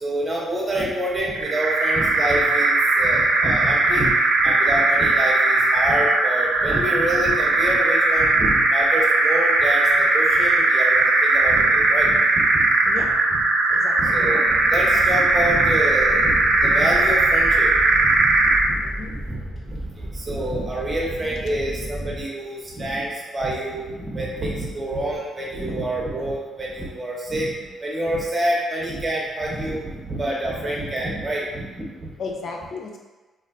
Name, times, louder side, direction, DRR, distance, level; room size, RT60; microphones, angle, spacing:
voice 1, 0.0-4.1 4.4-12.7 13.0-13.4 14.0-14.4 14.7-17.7 18.0-18.3 18.6-18.8 19.1-19.4 19.7-27.6 27.8-32.1, right 1 dB, 25° right, -4 dB, 0.9 m, -27 dB
sound 1, 1.3-18.7, right 2 dB, 80° right, 0.5 m, -19 dB
voice 2, 13.7-14.1 18.8-19.2 32.2-33.0, left 4 dB, 60° left, 2 dB, 0.5 m, -34 dB
sound 2, 14.4-22.2, right 1 dB, 10° left, 1.1 m, -34 dB
3.1 x 2.6 x 2.6 m, 1.2 s
cardioid pair, 90°, 0 cm